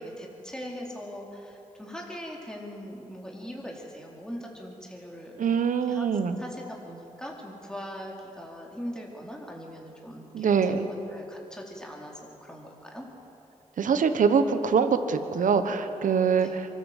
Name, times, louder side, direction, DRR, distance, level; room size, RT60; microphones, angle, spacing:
voice 1, 0.0-5.4 5.8-6.1 6.4-13.1 16.4-16.6, equal, 5° left, -2 dB, 4.3 m, -41 dB
voice 2, 5.4-6.4 10.3-10.9 13.8-16.7, right 6 dB, 80° right, 10 dB, 1.2 m, -24 dB
24.5 x 13.5 x 8.1 m, 2.9 s
cardioid pair, 50°, 13 cm